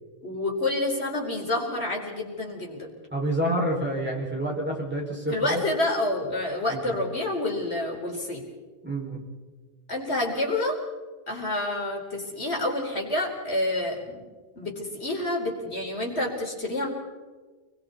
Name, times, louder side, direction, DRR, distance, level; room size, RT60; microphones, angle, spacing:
voice 1, 0.2-2.9 5.3-8.4 9.9-10.8 11.3-14.2 14.6-16.9, left 2 dB, 75° left, 0 dB, 4.8 m, -28 dB
voice 2, 3.1-5.6 6.7-6.9 8.8-9.2, right 1 dB, 10° right, -4 dB, 5.9 m, -28 dB
29.5 x 22.5 x 4.3 m, 1.3 s
omnidirectional pair, 1.1 m